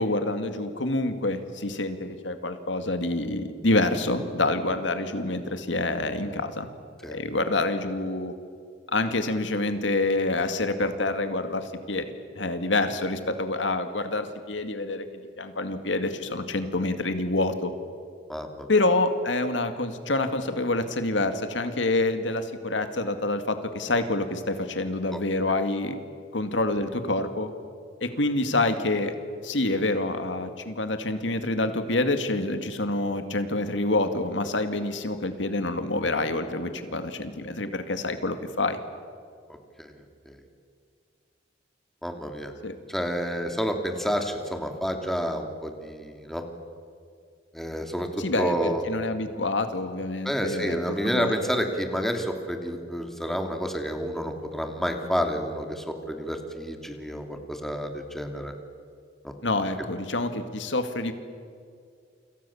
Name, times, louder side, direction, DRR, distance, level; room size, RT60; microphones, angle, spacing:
voice 1, 0.0-6.7 7.1-8.3 8.9-17.7 18.7-26.0 26.3-27.5 28.0-29.1 29.4-38.8 42.6-42.8 48.2-51.6 59.4-61.1, left 2 dB, 85° left, 8 dB, 2.2 m, -27 dB
voice 2, 18.3-18.7 25.1-25.2 39.8-39.9 40.3-40.4 42.0-42.5 42.9-46.4 47.5-48.1 48.4-48.8 50.2-58.5 59.2-59.3, equal, ahead, 4 dB, 2.8 m, -29 dB
29.0 x 27.0 x 7.2 m, 2.2 s
head